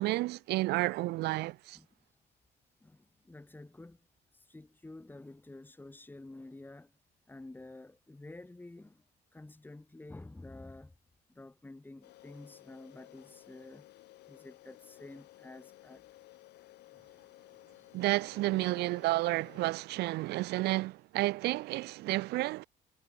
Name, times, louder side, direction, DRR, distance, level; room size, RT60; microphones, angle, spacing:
voice 1, 0.0-1.8 17.9-22.7, right 19 dB, 75° right, 0.5 m, -31 dB
voice 2, 2.8-4.1 4.3-6.9 7.3-9.0 9.3-10.9 11.3-13.9 14.3-16.0 16.9-17.1 17.7-17.9 18.2-18.9, left 2 dB, 10° left, 5.0 m, -50 dB
sound 1, 12.0-19.7, left 16 dB, 80° left, 4.8 m, -56 dB
cardioid pair, 110°, 17 cm